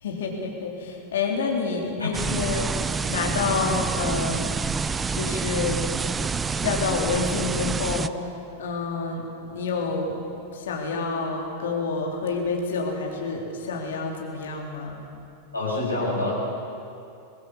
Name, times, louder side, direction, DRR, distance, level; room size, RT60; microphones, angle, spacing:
voice 1, 0.0-2.7 3.1-4.5 5.1-5.8 6.6-8.3 8.6-10.2 10.5-15.0, left 4 dB, 60° left, 0 dB, 3.5 m, -28 dB
sound 1, 2.1-8.1, right 5 dB, 15° right, 0.6 m, -27 dB
voice 2, 15.5-16.3, left 2 dB, 80° left, -5 dB, 7.6 m, -26 dB
23.0 x 18.5 x 7.3 m, 2.7 s
figure-of-eight pair, 90°, 0 cm